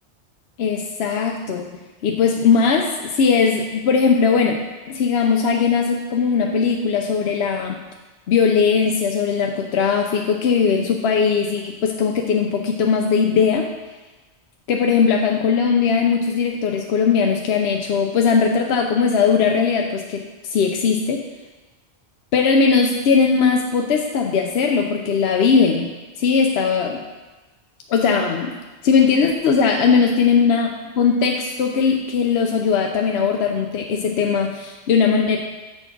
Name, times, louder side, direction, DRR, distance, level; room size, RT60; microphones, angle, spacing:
voice 1, 0.6-1.6 2.0-4.6 4.9-7.8 8.3-13.7 14.7-21.2 22.3-25.9 26.2-27.0 27.9-28.5 28.8-35.4, left 5 dB, 75° left, 2 dB, 0.9 m, -19 dB
8.0 x 4.4 x 5.9 m, 1.2 s
omnidirectional pair, 1.1 m